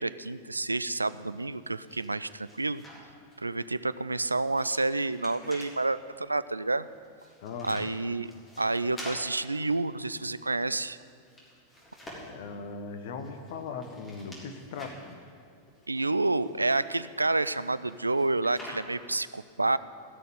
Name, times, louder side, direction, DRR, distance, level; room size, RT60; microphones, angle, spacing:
voice 1, 0.0-2.8 3.4-6.9 7.6-8.3 8.6-11.0 15.9-19.8, right 2 dB, 80° right, 16 dB, 0.3 m, -29 dB
sound 1, 1.3-3.4 3.7-5.8 6.8-10.8 11.1-12.5 13.2-15.1 15.7-19.1, equal, 15° left, 3.9 m, -49 dB
voice 2, 7.4-7.9 12.3-15.2, left 5 dB, 55° left, 7 dB, 1.3 m, -39 dB
16.5 x 6.8 x 9.4 m, 2.5 s
figure-of-eight pair, 90°, 0 cm